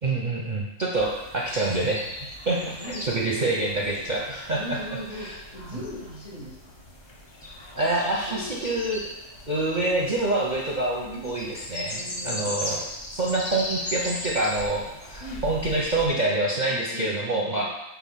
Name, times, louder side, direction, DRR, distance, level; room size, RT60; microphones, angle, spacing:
voice 1, 0.0-2.0 2.5-4.8 5.1-5.4 7.8-9.0 9.5-12.9 13.1-17.6, right 2 dB, 45° right, -3 dB, 0.6 m, -26 dB
sound 1, 0.9-16.1, left 1 dB, 30° left, 0.5 m, -38 dB
voice 2, 2.6-3.6 4.6-6.8 8.1-8.7 11.0-11.3 11.9-12.6 15.2-15.4 16.7-17.6, equal, 55° left, -6 dB, 2.4 m, -39 dB
4.7 x 4.1 x 5.6 m, 0.92 s
omnidirectional pair, 1.6 m